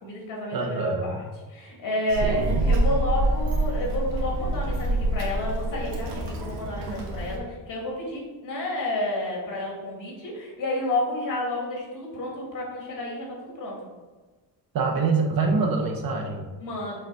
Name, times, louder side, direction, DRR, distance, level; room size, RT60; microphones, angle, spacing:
voice 1, 0.0-1.2 1.5-13.8 16.6-17.0, left 1 dB, 50° left, -2 dB, 2.3 m, -30 dB
voice 2, 0.5-1.2 2.2-2.6 14.7-16.5, right 4 dB, 55° right, 2 dB, 1.0 m, -25 dB
Child speech kid speaking, 2.1-7.4, right 1 dB, 90° right, 1.4 m, -26 dB
6.6 x 4.1 x 4.6 m, 1.2 s
cardioid pair, 180°, 41 cm